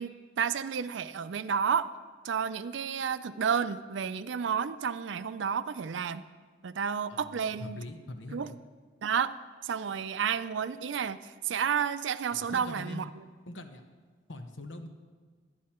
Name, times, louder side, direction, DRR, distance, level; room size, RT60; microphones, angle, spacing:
voice 1, 0.0-1.9 2.2-6.2 6.6-7.8 8.3-8.5 9.0-9.3 9.6-11.2 11.4-13.2, right 7 dB, 75° right, 13 dB, 0.4 m, -31 dB
voice 2, 7.1-8.6 12.3-13.0 13.5-13.8 14.3-14.9, left 1 dB, 90° left, 6 dB, 1.0 m, -43 dB
11.5 x 10.5 x 4.3 m, 1.5 s
head